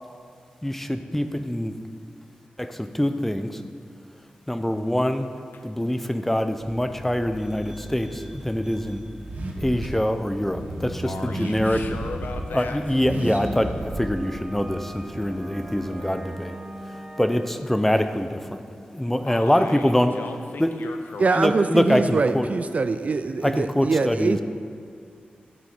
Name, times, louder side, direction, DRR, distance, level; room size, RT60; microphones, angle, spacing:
voice 1, 0.6-1.7 2.6-3.6 4.5-5.3 5.6-9.0 9.6-11.8 12.5-16.5 17.2-18.6 18.9-20.1 20.6-20.7 21.4-22.5 23.4-24.4, left 1 dB, 10° left, 8 dB, 0.5 m, -24 dB
Car / Accelerating revving vroom, 6.6-15.8, right 1 dB, 65° right, 1.3 m, -35 dB
sound 1, 7.4-9.8 10.3-12.7 13.3-17.5, right 1 dB, 25° right, 1.5 m, -44 dB
voice 2, 11.0-13.0 19.3-21.5 23.5-23.7, left 4 dB, 90° left, 5 dB, 0.5 m, -37 dB
voice 3, 21.2-24.4, right 4 dB, 50° right, 10 dB, 0.3 m, -23 dB
13.0 x 7.6 x 4.3 m, 2.2 s
wide cardioid pair, 120°, 3 cm